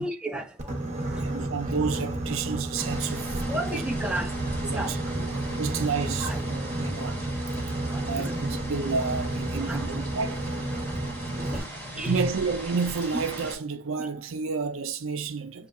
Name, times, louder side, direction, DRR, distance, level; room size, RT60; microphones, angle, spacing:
voice 1, 0.0-1.5 3.5-4.9 6.2-6.4 7.9-8.3 9.5-9.9 10.8-12.3 13.1-13.2 14.0-14.1, equal, 5° right, 0.5 m, -34 dB
Boat Water vehicle, 0.6-11.6, right 2 dB, 35° right, 1.1 m, -31 dB
voice 2, 1.2-4.2 4.6-10.5 11.4-11.5 11.9-15.7, right 5 dB, 70° right, 0.5 m, -31 dB
sound 1, 2.8-13.5, equal, 10° left, 1.3 m, -39 dB
6.8 x 2.8 x 2.5 m
head